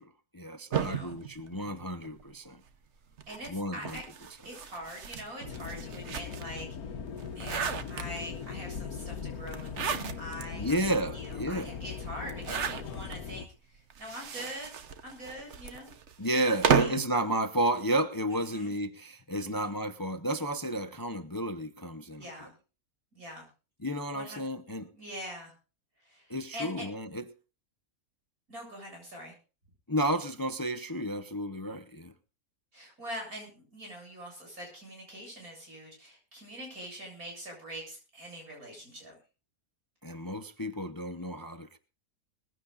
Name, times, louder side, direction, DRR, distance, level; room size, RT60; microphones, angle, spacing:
voice 1, 0.0-2.6 3.5-4.0 10.5-11.7 16.2-22.2 23.8-24.9 26.3-27.2 29.9-32.1 40.0-41.8, right 1 dB, 20° left, 0.6 m, -32 dB
sound 1, 0.7-2.3 3.2-6.6 7.1-8.5 9.5-10.4 10.9-11.0 11.2-11.3 12.2-13.2 13.9-17.1, right 7 dB, 55° right, 1.2 m, -33 dB
voice 2, 0.7-1.2 3.3-4.0 4.4-7.0 7.3-10.8 11.1-14.7 15.0-16.0 16.3-17.0 18.3-18.7 19.4-19.7 22.2-22.5 23.1-23.5 24.1-24.4 24.9-25.5 26.0-26.9 28.5-29.3 32.7-39.2, equal, 85° right, 8.6 m, -44 dB
sound 2, 5.4-13.5, left 6 dB, 85° left, 1.6 m, -40 dB
21.5 x 15.5 x 2.5 m
omnidirectional pair, 1.5 m